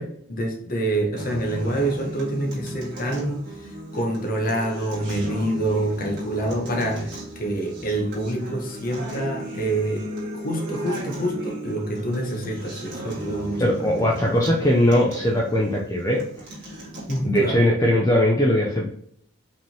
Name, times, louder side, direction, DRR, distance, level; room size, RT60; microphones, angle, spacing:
voice 1, 0.0-14.6 17.1-17.7, right 1 dB, 40° left, 0 dB, 1.1 m, -27 dB
Acoustic guitar, 1.2-17.2, right 1 dB, 50° right, 1.9 m, -36 dB
voice 2, 13.6-16.2 17.2-18.9, left 1 dB, 15° left, -2 dB, 0.6 m, -20 dB
5.2 x 3.6 x 2.8 m, 0.65 s
head